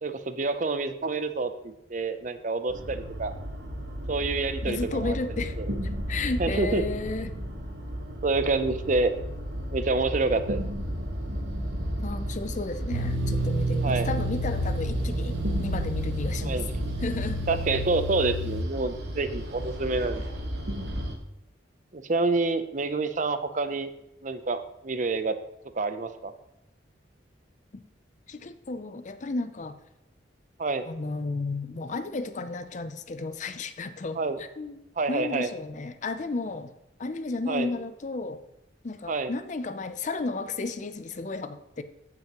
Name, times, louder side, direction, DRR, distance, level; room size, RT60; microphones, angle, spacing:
voice 1, 0.0-3.3 4.1-5.2 5.6-5.7 6.4-6.8 8.2-9.1 9.7-10.6 13.8-14.1 16.4-16.7 17.5-20.2 21.9-23.9 24.2-25.4 25.8-26.3 30.6-30.9 34.2-34.4 35.0-35.5 37.5-37.7 39.1-39.3, right 3 dB, 40° right, 0.6 m, -27 dB
sound 1, 2.7-21.1, equal, 65° right, 1.3 m, -33 dB
voice 2, 4.6-5.6 5.8-7.4 12.0-16.6 17.0-17.5 27.7-27.8 28.3-29.8 30.8-34.8 35.1-36.7 37.0-38.4 38.8-41.8, left 3 dB, 40° left, 0.5 m, -33 dB
sound 2, 12.9-18.6, right 1 dB, 80° right, 0.6 m, -31 dB
14.5 x 6.0 x 3.0 m
head